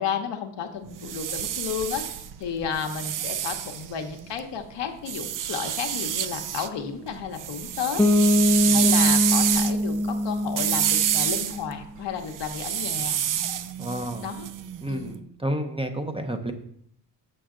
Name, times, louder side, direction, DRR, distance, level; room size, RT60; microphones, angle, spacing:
voice 1, 0.0-8.0 8.7-13.2 14.2-14.5 14.9-15.2, left 7 dB, 70° left, 5 dB, 1.1 m, -32 dB
sound 1, 0.9-4.4 5.1-6.7 7.1-15.0, right 10 dB, 45° right, 0.5 m, -28 dB
Bass guitar, 8.0-11.7, left 1 dB, 5° left, 0.4 m, -23 dB
voice 2, 13.8-14.3 14.8-16.5, right 1 dB, 15° right, 6 dB, 0.8 m, -31 dB
6.9 x 6.5 x 3.8 m, 0.70 s
cardioid pair, 80°, 44 cm